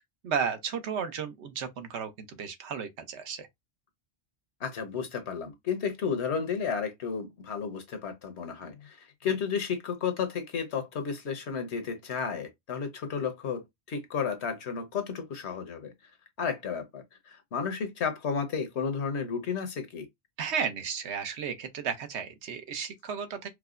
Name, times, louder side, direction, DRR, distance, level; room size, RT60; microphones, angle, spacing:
voice 1, 0.2-3.5 20.4-23.5, right 7 dB, 80° right, 1.0 m, -33 dB
voice 2, 4.6-15.9 16.4-20.1, left 6 dB, 80° left, 1.1 m, -32 dB
4.6 x 2.1 x 2.4 m
omnidirectional pair, 1.1 m